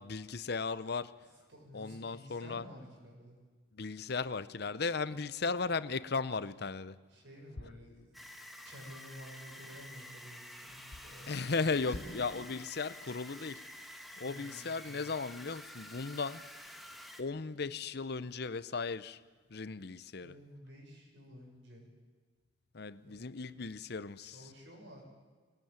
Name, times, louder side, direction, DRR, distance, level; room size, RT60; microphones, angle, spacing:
voice 1, 0.0-1.2 1.7-2.6 3.7-7.0 11.3-13.7 14.2-16.5 17.2-19.2 19.5-20.3 22.7-24.4, left 4 dB, 60° left, 0.8 m, -36 dB
voice 2, 1.2-3.4 7.1-8.2 8.6-11.3 11.9-12.5 14.2-14.7 20.2-21.9 23.0-23.4 24.2-25.0, equal, 75° right, 7.1 m, -52 dB
sound 1, 8.1-17.2, left 1 dB, ahead, 1.5 m, -50 dB
23.0 x 18.5 x 9.0 m
head